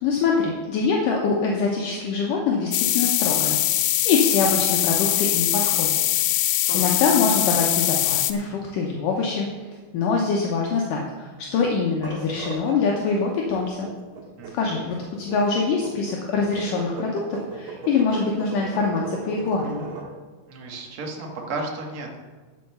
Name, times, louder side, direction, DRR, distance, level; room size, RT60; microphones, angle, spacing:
voice 1, 0.0-3.6 4.0-5.9 6.3-9.5 9.9-13.9 14.5-19.9, left 4 dB, 70° left, -1 dB, 2.4 m, -24 dB
sound 1, 2.7-8.3, left 14 dB, 85° left, 2.5 m, -22 dB
sound 2, 11.9-20.1, right 5 dB, 60° right, 3.0 m, -37 dB
voice 2, 14.4-14.7 20.5-22.2, right 2 dB, 45° right, 0 dB, 1.1 m, -33 dB
12.0 x 5.7 x 6.9 m, 1.4 s
omnidirectional pair, 4.2 m